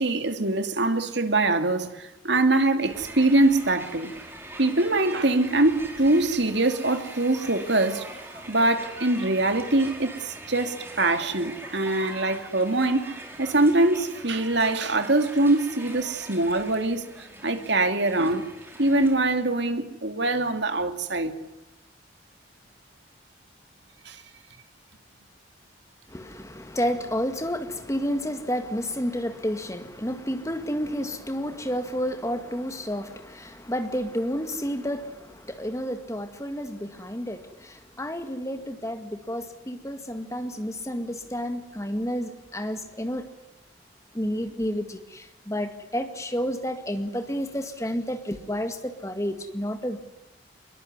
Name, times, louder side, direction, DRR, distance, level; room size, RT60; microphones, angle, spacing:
voice 1, 0.0-4.1 4.6-8.1 8.5-18.5 18.8-21.3 24.1-24.2, right 2 dB, 60° right, 2.6 m, -23 dB
Crowd, 2.8-19.5, right 2 dB, 10° right, 4.8 m, -42 dB
voice 2, 26.1-43.3 44.1-50.0, equal, 15° left, 2.0 m, -30 dB
25.0 x 22.5 x 9.7 m
head